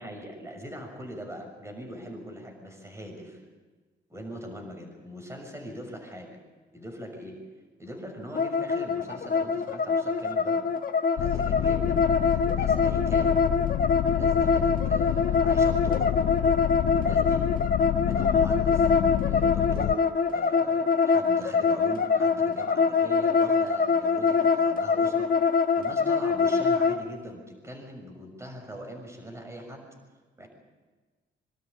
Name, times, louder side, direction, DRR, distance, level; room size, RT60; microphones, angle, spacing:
voice 1, 0.0-3.4 4.1-6.4 6.7-7.4 7.8-10.7 11.2-13.5 14.0-16.2 16.9-17.6 18.0-18.9 19.2-29.9 30.4-30.5, equal, 15° right, 3 dB, 6.4 m, -41 dB
sound 1, 8.3-27.0, left 5 dB, 45° left, 1.4 m, -24 dB
sound 2, 11.2-20.0, left 12 dB, 70° left, 0.6 m, -28 dB
24.5 x 12.5 x 9.9 m, 1.3 s
cardioid pair, 90°, 20 cm